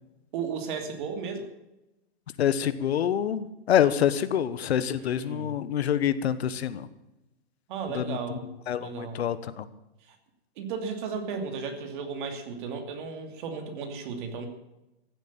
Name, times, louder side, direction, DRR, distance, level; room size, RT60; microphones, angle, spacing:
voice 1, 0.3-1.5 5.0-5.5 7.7-9.2 10.1-10.2 10.6-14.5, right 5 dB, 50° right, 6 dB, 2.8 m, -35 dB
voice 2, 2.4-6.9 7.9-8.4 8.7-9.6, left 9 dB, 85° left, 13 dB, 1.2 m, -26 dB
15.0 x 8.4 x 8.7 m, 0.95 s
hypercardioid pair, 145°, 31 cm